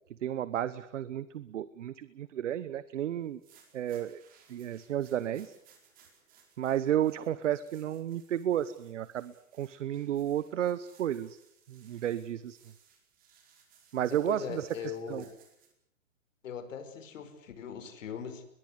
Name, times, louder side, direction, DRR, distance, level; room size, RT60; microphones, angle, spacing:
voice 1, 0.2-3.4 3.7-4.2 4.5-5.5 6.6-11.4 11.7-12.6 13.9-15.2, right 11 dB, 60° right, 16 dB, 1.2 m, -32 dB
sound 1, 3.2-15.7, right 7 dB, 20° right, 4.6 m, -63 dB
voice 2, 14.0-15.3 16.4-18.5, left 7 dB, 60° left, 9 dB, 5.2 m, -40 dB
23.0 x 21.5 x 8.1 m, 0.72 s
hypercardioid pair, 160°, 42 cm